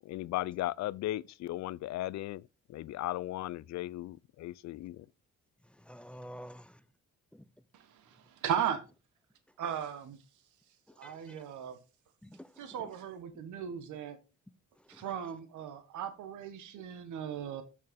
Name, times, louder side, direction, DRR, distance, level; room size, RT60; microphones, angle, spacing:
voice 1, 0.1-2.4 2.7-4.9, left 15 dB, 65° left, 0.4 m, -36 dB
voice 2, 5.8-6.8 7.3-7.4 11.0-11.4 12.2-12.5 12.8-12.9 14.9-15.1, equal, 5° left, 0.5 m, -49 dB
voice 3, 7.7-8.8 9.6-10.2 11.0-11.8 12.6-14.2 14.9-17.6, right 8 dB, 75° right, 1.2 m, -37 dB
6.4 x 6.4 x 3.5 m
cardioid pair, 90°, 30 cm